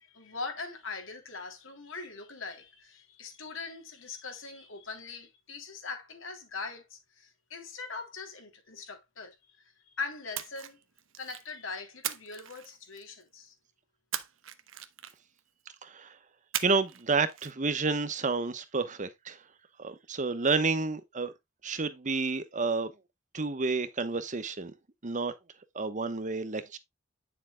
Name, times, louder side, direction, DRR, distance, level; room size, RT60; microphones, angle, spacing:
voice 1, 0.0-10.8 11.2-13.5, left 4 dB, 75° left, 3.3 m, -41 dB
Splash splatter, 10.3-11.5 12.0-13.2 14.1-15.4 16.5-17.0 17.3-17.5, right 11 dB, 80° right, 1.0 m, -38 dB
voice 2, 15.8-16.1 16.6-19.4 19.8-21.3 21.6-22.9 23.3-24.7 25.0-25.3 25.7-26.8, right 4 dB, 40° right, 1.0 m, -30 dB
10.0 x 7.0 x 2.3 m
head